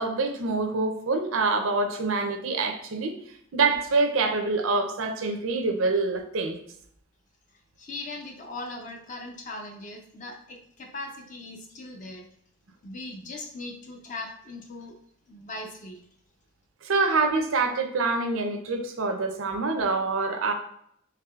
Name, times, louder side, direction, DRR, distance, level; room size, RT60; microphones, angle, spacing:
voice 1, 0.0-3.2 3.5-6.6 16.8-20.5, right 3 dB, 80° right, 6 dB, 0.6 m, -26 dB
voice 2, 7.8-12.3 12.8-15.0 15.3-16.0, left 2 dB, 35° left, 2 dB, 0.5 m, -39 dB
4.7 x 3.5 x 2.4 m, 0.69 s
head